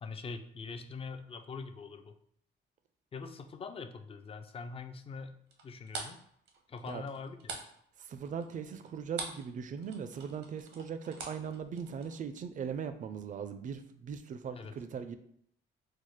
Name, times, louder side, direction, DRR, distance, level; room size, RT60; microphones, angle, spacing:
voice 1, 0.0-2.1 3.1-5.4 5.6-6.2 6.7-7.6 14.5-14.7, left 4 dB, 30° left, 8 dB, 0.3 m, -43 dB
sound 1, 5.5-9.5 9.8-12.2, right 4 dB, 80° right, 0.7 m, -43 dB
voice 2, 8.1-15.2, right 7 dB, 40° right, 10 dB, 0.4 m, -39 dB
4.4 x 2.0 x 3.1 m, 0.67 s
cardioid pair, 90°, 20 cm